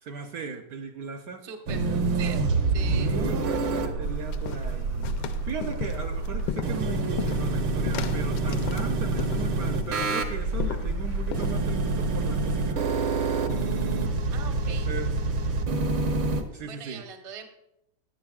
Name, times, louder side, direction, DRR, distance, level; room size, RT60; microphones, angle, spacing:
voice 1, 0.0-1.5 2.9-5.2 5.4-12.8 14.6-15.2 16.5-17.0, right 4 dB, 65° right, 0.9 m, -37 dB
voice 2, 1.4-1.8 2.2-2.5 2.7-3.1 14.3-14.9 16.6-17.5, right 6 dB, 40° right, 0.4 m, -40 dB
sound 1, 1.7-16.4, right 3 dB, 80° right, 1.8 m, -27 dB
sound 2, 4.0-11.5, left 8 dB, 75° left, 1.3 m, -36 dB
14.5 x 10.0 x 2.4 m
omnidirectional pair, 2.1 m